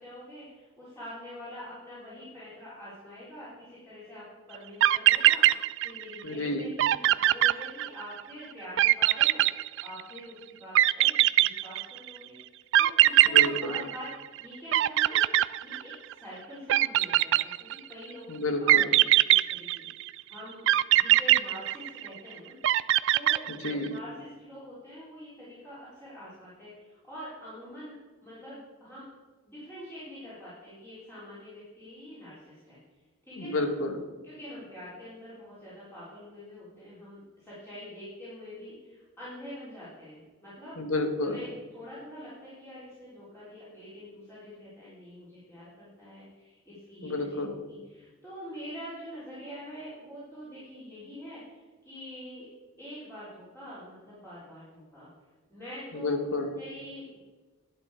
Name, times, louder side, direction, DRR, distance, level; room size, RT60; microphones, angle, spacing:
voice 1, 0.0-9.4 9.8-15.2 15.6-18.9 19.2-22.6 23.1-29.0 29.4-32.8 33.2-33.6 34.2-40.8 41.2-41.5 41.7-52.5 52.8-55.1 55.5-56.2 56.6-57.2, equal, 10° left, -11 dB, 3.8 m, -45 dB
sound 1, 4.5-4.6 4.8-6.2 6.5-6.6 6.8-8.2 8.8-10.2 10.7-12.1 12.7-14.4 14.7-16.1 16.7-17.9 18.7-20.1 20.7-22.2 22.6-23.9, right 14 dB, 60° right, 0.3 m, -22 dB
voice 2, 6.2-6.7 13.2-13.8 18.3-18.9 23.5-23.9 33.3-34.0 40.8-41.4 47.0-47.5 55.9-56.5, left 2 dB, 75° left, 5 dB, 1.5 m, -30 dB
11.5 x 9.0 x 4.9 m, 1.3 s
head